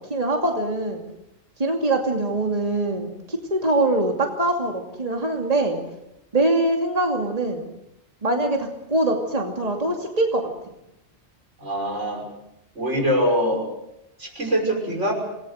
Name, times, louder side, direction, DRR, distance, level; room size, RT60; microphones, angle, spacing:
voice 1, 0.1-1.0 1.6-5.8 6.3-7.6 8.2-10.5, right 2 dB, 35° right, 2 dB, 2.7 m, -23 dB
voice 2, 11.6-12.2 12.7-13.7 14.2-15.1, equal, 85° right, 2 dB, 6.5 m, -23 dB
27.0 x 19.5 x 6.5 m, 0.85 s
omnidirectional pair, 1.2 m